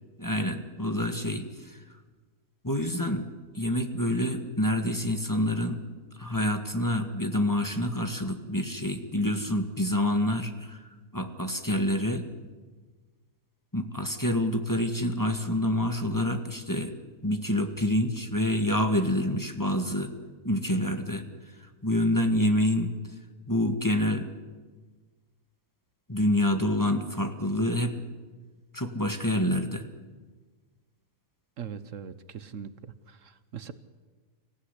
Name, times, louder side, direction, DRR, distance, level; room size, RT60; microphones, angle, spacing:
voice 1, 0.2-1.8 2.6-3.3 3.5-5.8 6.2-10.8 11.1-12.3 13.7-16.9 17.2-20.1 20.4-21.2 21.8-22.9 23.5-24.3 26.1-28.0 28.7-29.9, left 1 dB, 15° left, 5 dB, 1.6 m, -27 dB
voice 2, 31.6-33.7, right 7 dB, 65° right, 13 dB, 1.3 m, -41 dB
25.0 x 15.5 x 9.9 m, 1.4 s
omnidirectional pair, 1.4 m